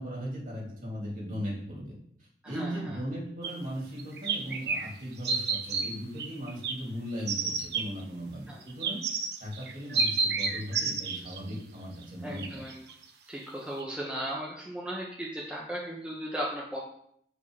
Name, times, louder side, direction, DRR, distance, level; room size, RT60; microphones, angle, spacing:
voice 1, 0.0-9.0 9.4-12.6, equal, 45° right, -4 dB, 3.0 m, -38 dB
voice 2, 2.4-3.0 8.5-8.6 12.2-12.8 13.3-16.8, right 1 dB, 5° right, -5 dB, 1.1 m, -36 dB
sound 1, 3.4-3.5 4.0-4.9 5.2-5.9 6.2-6.7 7.3-7.8 8.6-11.5 12.0-12.1 12.4-13.0 13.4-13.5 13.8-13.9, right 4 dB, 65° right, 1.1 m, -30 dB
7.7 x 5.0 x 4.8 m, 0.68 s
head